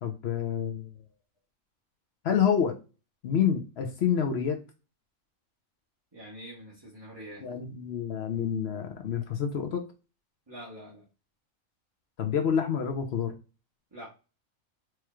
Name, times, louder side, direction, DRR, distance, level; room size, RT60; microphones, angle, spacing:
voice 1, 0.0-0.9 2.2-2.8 3.2-4.6 7.4-9.9 12.2-13.3, left 8 dB, 60° left, 5 dB, 0.8 m, -28 dB
voice 2, 6.1-7.5 10.5-11.0 13.9-14.1, equal, 20° right, -7 dB, 1.3 m, -45 dB
4.5 x 3.1 x 2.3 m, 0.31 s
omnidirectional pair, 1.4 m